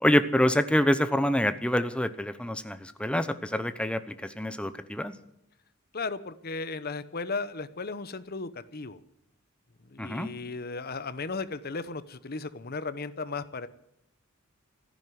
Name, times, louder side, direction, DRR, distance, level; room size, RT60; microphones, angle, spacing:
voice 1, 0.0-5.1 10.0-10.3, equal, 5° left, 11 dB, 0.8 m, -26 dB
voice 2, 5.9-9.0 9.8-13.7, left 4 dB, 50° left, 14 dB, 0.9 m, -35 dB
14.5 x 10.5 x 9.4 m, 0.78 s
head